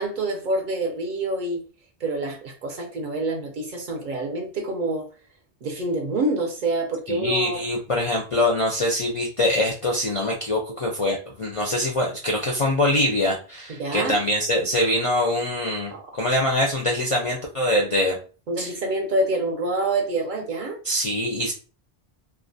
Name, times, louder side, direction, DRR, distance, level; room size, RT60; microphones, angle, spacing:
voice 1, 0.0-1.6 2.0-5.0 5.6-7.6 13.8-14.2 15.9-16.0 18.5-20.8, right 2 dB, 60° right, 0.6 m, -26 dB
voice 2, 7.1-18.2 18.6-18.7 20.8-21.5, left 1 dB, 50° left, 0.4 m, -23 dB
2.4 x 2.1 x 2.5 m
omnidirectional pair, 1.1 m